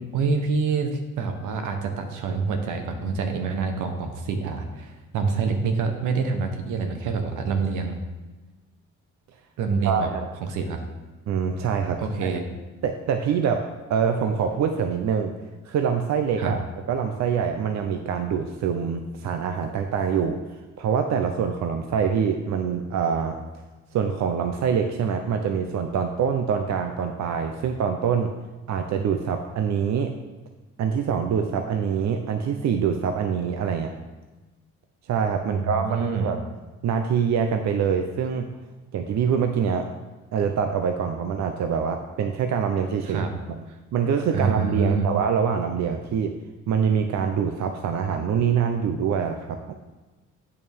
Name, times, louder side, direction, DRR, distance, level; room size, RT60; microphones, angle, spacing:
voice 1, 0.1-8.0 9.6-10.1 10.4-10.8 12.0-12.4 16.4-16.5 35.4-36.3 43.1-43.3 44.3-45.1, right 5 dB, 85° right, 5 dB, 1.1 m, -26 dB
voice 2, 9.8-10.3 11.3-12.3 12.8-13.6 13.9-15.3 15.6-16.6 16.9-23.4 23.9-28.3 28.7-30.1 30.8-33.9 35.1-36.4 36.8-38.5 38.9-39.9 40.3-43.6 43.9-46.3 46.7-49.8, right 7 dB, 65° right, 6 dB, 0.6 m, -25 dB
8.7 x 6.8 x 3.5 m, 1.2 s
cardioid pair, 90°, 30 cm